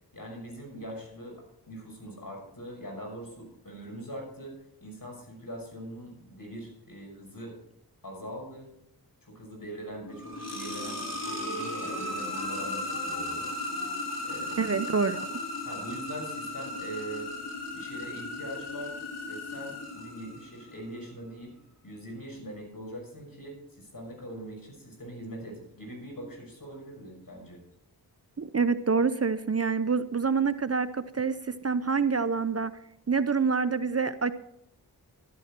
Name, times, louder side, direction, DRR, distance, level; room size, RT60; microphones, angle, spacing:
voice 1, 0.1-4.5 4.8-7.6 8.0-8.7 9.2-13.4 14.2-14.7 15.6-17.3 17.7-18.9 19.3-21.5 21.8-27.6, right 1 dB, 55° left, 1 dB, 6.1 m, -42 dB
sound 1, 10.1-20.8, left 1 dB, 40° left, 3.6 m, -36 dB
voice 2, 14.6-15.4 28.4-32.7 33.1-34.3, right 5 dB, 40° right, 12 dB, 0.6 m, -27 dB
12.5 x 12.0 x 4.4 m, 0.76 s
cardioid pair, 45°, 40 cm